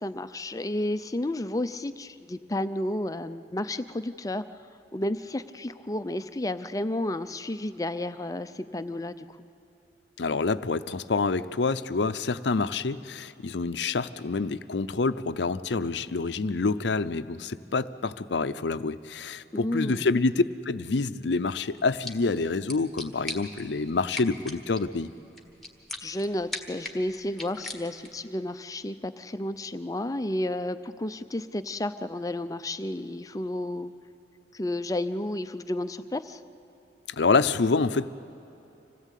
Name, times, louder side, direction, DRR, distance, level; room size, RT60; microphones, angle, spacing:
voice 1, 0.0-4.4 4.9-9.3 19.5-20.1 26.0-33.9 34.5-36.4, left 1 dB, 20° left, 11 dB, 0.5 m, -32 dB
voice 2, 10.2-25.1 37.2-38.1, left 3 dB, 85° left, 13 dB, 0.6 m, -27 dB
sound 1, 21.8-28.3, left 2 dB, ahead, 1.5 m, -42 dB
26.0 x 17.0 x 8.4 m, 3.0 s
head